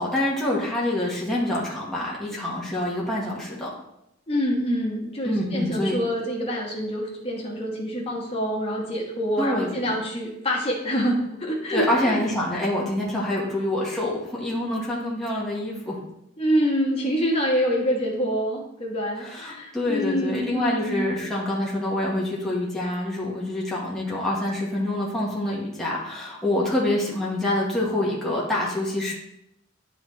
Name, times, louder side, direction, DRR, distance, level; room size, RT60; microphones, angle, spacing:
voice 1, 0.0-3.7 5.2-6.0 9.4-9.9 11.7-16.0 19.2-29.1, left 1 dB, ahead, -6 dB, 1.3 m, -26 dB
voice 2, 4.3-12.2 16.4-21.1, equal, 30° left, -1 dB, 1.4 m, -26 dB
9.7 x 4.1 x 3.1 m, 0.80 s
head